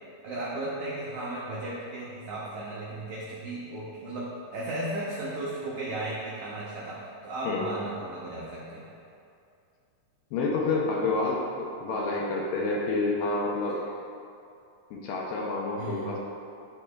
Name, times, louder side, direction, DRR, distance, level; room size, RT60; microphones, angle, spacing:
voice 1, 0.2-8.9 15.8-16.2, right 2 dB, 85° right, -6 dB, 1.6 m, -35 dB
voice 2, 10.3-13.8 14.9-16.2, left 3 dB, 75° left, -2 dB, 2.1 m, -28 dB
11.5 x 4.3 x 2.3 m, 2.5 s
omnidirectional pair, 4.5 m